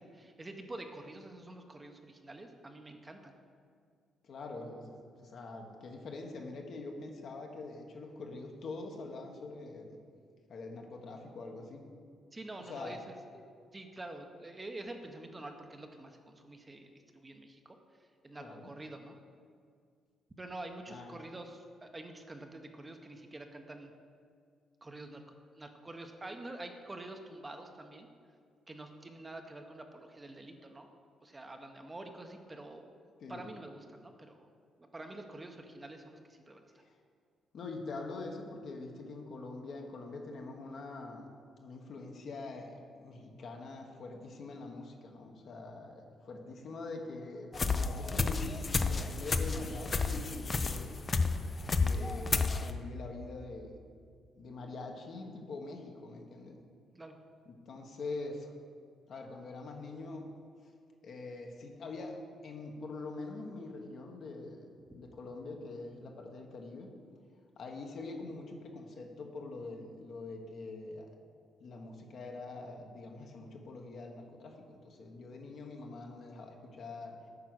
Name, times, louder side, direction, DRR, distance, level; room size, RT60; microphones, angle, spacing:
voice 1, 0.2-3.3 12.3-13.0 13.7-17.8 18.2-19.2 20.4-23.9 24.8-25.2 25.6-28.1 28.7-30.9 31.2-34.5 34.8-36.6 57.0-57.2, right 2 dB, 20° right, 5 dB, 0.8 m, -47 dB
voice 2, 4.2-10.0 10.5-11.9 12.7-13.0 18.3-18.7 20.9-21.2 33.2-33.5 36.8-36.9 37.5-41.3 41.6-50.9 51.8-53.8 54.3-56.6 57.5-58.5 59.1-60.3 60.6-60.7 61.0-62.2 62.4-66.9 67.6-71.1 71.6-77.2, left 3 dB, 60° left, 2 dB, 1.2 m, -44 dB
sound 1, 47.5-52.7, left 4 dB, 35° left, 0.5 m, -31 dB
8.7 x 4.8 x 6.3 m, 2.2 s
cardioid pair, 90°, 0 cm